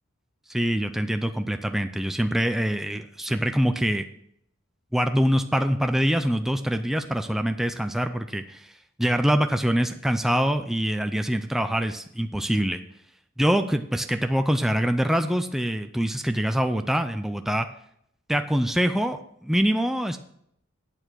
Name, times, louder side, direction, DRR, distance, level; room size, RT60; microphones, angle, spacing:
voice 1, 0.5-4.0 4.9-8.7 9.0-12.8 13.4-17.7 18.3-20.2, equal, ahead, 7 dB, 0.5 m, -24 dB
8.8 x 7.0 x 6.1 m, 0.71 s
head